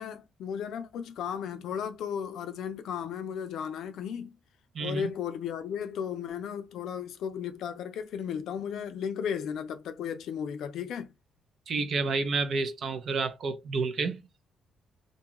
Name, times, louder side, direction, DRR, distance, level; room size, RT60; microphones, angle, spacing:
voice 1, 0.0-4.4 4.8-11.1, left 8 dB, 80° left, 0.4 m, -35 dB
voice 2, 4.7-5.1 11.7-14.2, right 4 dB, 60° right, 0.5 m, -30 dB
2.6 x 2.3 x 2.9 m
cardioid pair, 90°, 0 cm